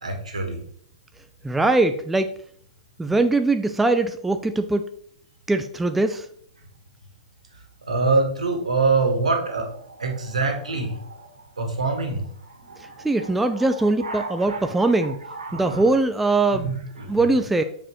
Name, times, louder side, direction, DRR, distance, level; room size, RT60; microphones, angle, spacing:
voice 1, 0.0-0.6 7.9-11.3 11.6-12.2 12.7-13.3 13.6-13.7 14.0-14.9 15.3-15.8 16.6-17.2, right 3 dB, 70° right, 2 dB, 1.7 m, -25 dB
voice 2, 1.4-2.3 3.0-4.8 5.5-6.3 13.0-15.2 15.5-16.7 17.1-17.6, right 2 dB, 5° right, 8 dB, 0.3 m, -21 dB
8.4 x 4.8 x 3.2 m, 0.64 s
figure-of-eight pair, 105°, 4 cm